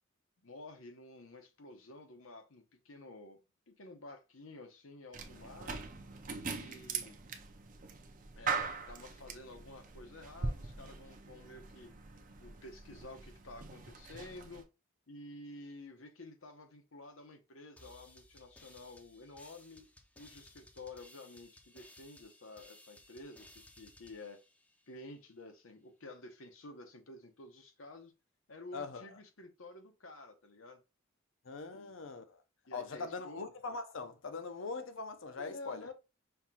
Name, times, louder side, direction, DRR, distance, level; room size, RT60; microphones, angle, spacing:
voice 1, 0.4-5.7 6.3-7.2 8.4-11.9 12.4-14.6 15.1-19.9 20.2-24.4 24.9-28.1 28.5-30.8 31.7-31.9 32.7-33.4 35.4-35.9, left 2 dB, 85° left, 1.0 m, -51 dB
sound 1, 5.1-14.6, right 4 dB, 40° right, 0.5 m, -42 dB
sound 2, 17.8-25.3, left 1 dB, 5° left, 0.5 m, -60 dB
voice 2, 28.7-29.2 31.4-32.4 32.7-35.9, left 4 dB, 70° left, 0.6 m, -42 dB
5.7 x 2.3 x 2.8 m
head